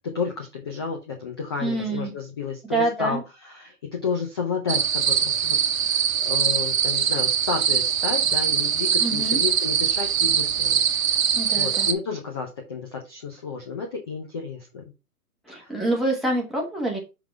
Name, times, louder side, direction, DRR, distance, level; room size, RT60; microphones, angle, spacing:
voice 1, 0.1-11.2 11.6-14.8 15.5-15.7, left 5 dB, 15° left, 2 dB, 0.5 m, -32 dB
voice 2, 1.6-2.1 2.7-3.2 9.0-9.4 11.3-11.9 15.4-17.0, right 2 dB, ahead, -3 dB, 1.2 m, -26 dB
sound 1, 4.7-11.9, right 8 dB, 55° right, 1.1 m, -22 dB
6.9 x 3.9 x 4.5 m, 0.26 s
hypercardioid pair, 150°, 47 cm